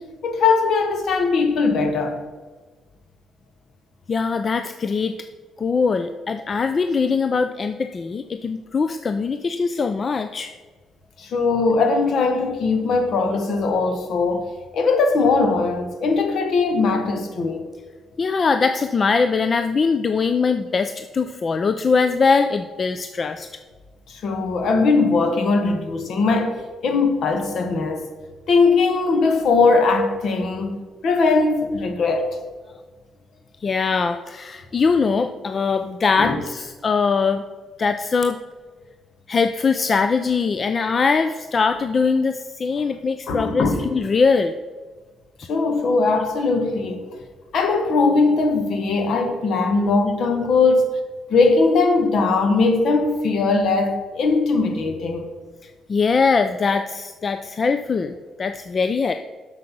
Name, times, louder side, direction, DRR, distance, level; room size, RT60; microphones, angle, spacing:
voice 1, 0.2-2.2 11.2-17.7 24.1-28.1 28.5-30.8 31.0-32.4 36.2-36.4 43.3-43.9 45.5-47.0 47.5-50.9 51.3-55.3, left 3 dB, 65° left, 1.4 m, -20 dB
voice 2, 4.1-5.2 5.6-10.5 18.2-23.5 33.6-37.4 37.8-38.4 39.3-44.5 55.6-59.1, left 5 dB, 40° left, 0.4 m, -21 dB
7.7 x 6.4 x 6.1 m
cardioid pair, 90°, 0 cm